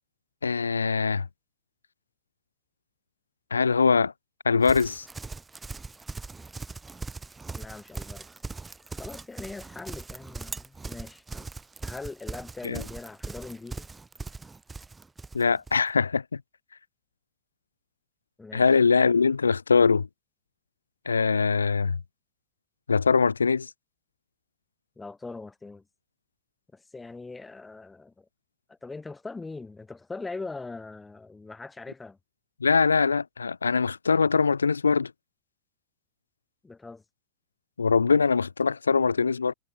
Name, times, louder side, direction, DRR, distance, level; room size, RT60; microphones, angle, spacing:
voice 1, 0.4-1.3 3.5-4.1 4.5-5.1 12.6-12.8 15.3-16.4 18.5-20.1 21.1-22.0 22.9-23.7 32.6-35.1 37.8-39.5, left 5 dB, 80° left, 1.8 m, -22 dB
Livestock farm animals working animals, 4.6-15.8, right 3 dB, 10° right, 5.8 m, -40 dB
voice 2, 7.6-8.3 8.9-11.5 11.8-13.9 18.4-18.6 25.0-25.8 26.7-28.3 28.7-32.2 36.6-37.0, left 3 dB, 10° left, 5.7 m, -41 dB
figure-of-eight pair, 85°, 0 cm